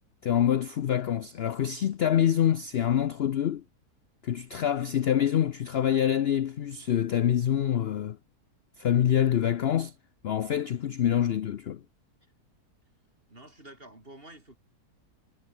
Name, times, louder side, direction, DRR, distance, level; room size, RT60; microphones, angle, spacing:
voice 1, 0.2-3.6 4.2-8.2 8.8-9.9 10.2-11.8, left 10 dB, 60° left, 0.7 m, -26 dB
voice 2, 13.3-14.6, right 1 dB, 35° right, 6.5 m, -49 dB
omnidirectional pair, 1.6 m